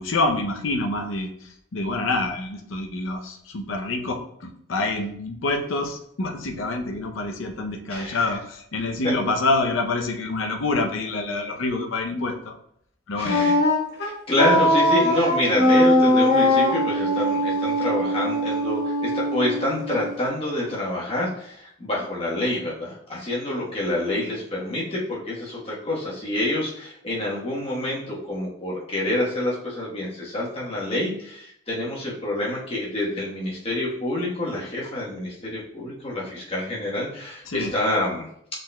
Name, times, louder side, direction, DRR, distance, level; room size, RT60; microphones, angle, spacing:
voice 1, 0.0-12.6 13.1-13.4 37.5-37.7, left 2 dB, 80° left, 3 dB, 0.6 m, -27 dB
voice 2, 7.9-8.3 13.1-13.6 14.0-38.3, left 1 dB, 30° left, -5 dB, 1.1 m, -27 dB
Wind instrument woodwind instrument, 13.3-20.2, left 1 dB, 50° left, 1.4 m, -21 dB
6.3 x 3.8 x 2.2 m, 0.70 s
head